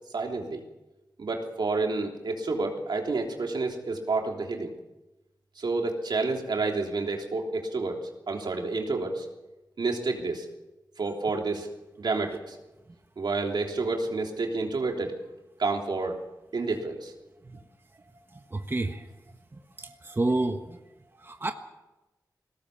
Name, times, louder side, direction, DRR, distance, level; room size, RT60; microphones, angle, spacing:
voice 1, 0.1-0.6 1.2-4.7 5.6-9.3 9.8-10.4 11.0-11.7 12.0-12.6 13.2-15.2 15.6-16.2 16.5-17.1, right 3 dB, 80° right, 2 dB, 3.4 m, -29 dB
voice 2, 18.5-19.0 19.8-20.6 21.2-21.5, right 2 dB, 30° right, 5 dB, 1.4 m, -28 dB
20.5 x 18.0 x 7.2 m, 1.0 s
wide cardioid pair, 85°, 7 cm